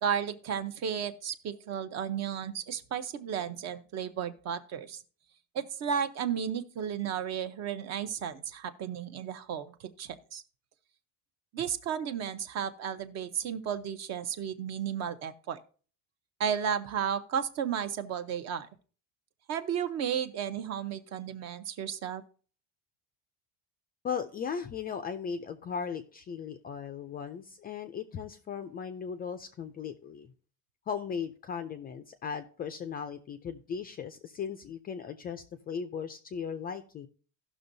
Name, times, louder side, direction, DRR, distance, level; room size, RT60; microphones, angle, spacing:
voice 1, 0.0-5.0 5.5-10.4 11.5-15.6 16.4-18.7 19.5-22.2, right 8 dB, 45° right, 10 dB, 0.7 m, -33 dB
voice 2, 24.0-30.3 30.9-37.1, left 7 dB, 25° left, 9 dB, 0.4 m, -37 dB
16.5 x 6.1 x 2.6 m, 0.41 s
cardioid pair, 165°, 38 cm